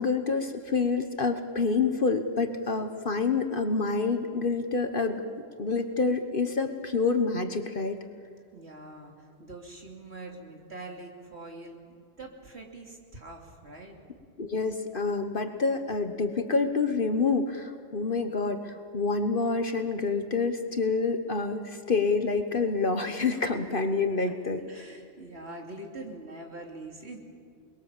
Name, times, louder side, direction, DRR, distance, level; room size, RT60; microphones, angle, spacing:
voice 1, 0.0-5.2 5.6-8.0 14.4-24.6, left 4 dB, 45° left, 7 dB, 1.3 m, -27 dB
voice 2, 8.5-14.0 24.7-27.2, right 2 dB, 55° right, 1 dB, 3.1 m, -44 dB
28.5 x 21.0 x 7.5 m, 2.2 s
omnidirectional pair, 1.3 m